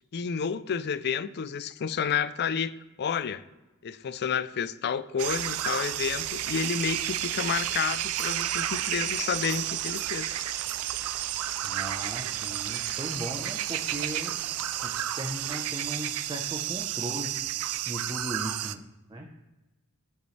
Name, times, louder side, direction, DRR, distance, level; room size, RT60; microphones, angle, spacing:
voice 1, 0.1-2.7 3.0-3.4 3.8-10.4, left 7 dB, 50° left, 15 dB, 0.4 m, -30 dB
sound 1, 5.2-18.7, right 12 dB, 70° right, 0.4 m, -31 dB
voice 2, 11.6-18.8 19.1-19.3, right 1 dB, 20° right, 1 dB, 0.8 m, -38 dB
15.5 x 5.6 x 3.3 m, 1.1 s
head